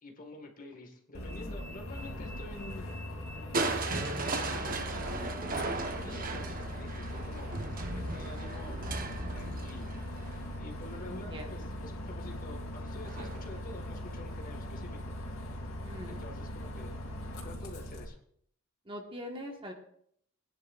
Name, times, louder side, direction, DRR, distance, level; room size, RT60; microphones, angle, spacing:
voice 1, 0.0-2.9 3.8-7.6 7.9-8.8 9.3-9.9 10.6-15.0 16.1-17.0 17.4-18.2, left 2 dB, 40° left, 2 dB, 1.8 m, -48 dB
Bus, 1.1-18.0, left 1 dB, 80° left, 2.6 m, -40 dB
Crushing, 3.5-11.5 13.1-13.6 14.1-14.2, right 3 dB, 45° right, 1.1 m, -37 dB
voice 2, 11.1-11.5 15.8-16.2 18.8-19.7, equal, 25° right, 2 dB, 1.6 m, -42 dB
21.0 x 9.9 x 2.5 m, 0.66 s
head